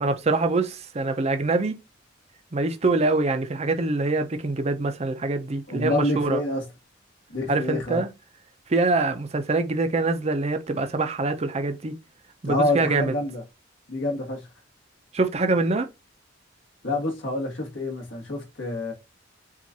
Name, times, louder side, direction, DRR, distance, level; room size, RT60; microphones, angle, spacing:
voice 1, 0.0-1.8 2.5-6.4 7.5-8.1 8.7-11.9 12.4-13.1 15.1-15.9, right 3 dB, 35° right, 0.6 m, -24 dB
voice 2, 5.7-6.7 7.3-8.0 12.4-13.4 13.9-14.5 16.8-18.9, left 2 dB, 70° left, 1.6 m, -27 dB
7.2 x 2.5 x 2.7 m
head